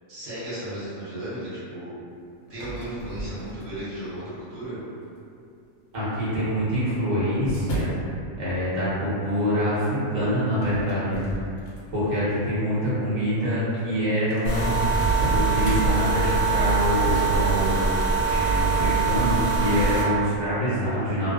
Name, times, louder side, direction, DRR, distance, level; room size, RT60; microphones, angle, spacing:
voice 1, 0.1-1.9 2.5-4.8, right 1 dB, 70° right, -11 dB, 1.1 m, -35 dB
sound 1, 2.5-3.9 4.6-5.0 6.1-8.1 10.5-12.1 12.6-12.8 13.6-13.7 13.8-13.9 14.3-15.8 17.9-19.2, right 1 dB, 85° left, 1.0 m, -35 dB
voice 2, 5.9-8.1 8.4-11.5 11.9-14.7 15.3-17.9 18.3-21.3, equal, 35° right, -11 dB, 0.8 m, -25 dB
sound 2, 14.4-20.0, right 4 dB, 60° left, 1.1 m, -23 dB
2.5 x 2.1 x 2.3 m, 2.5 s
omnidirectional pair, 1.4 m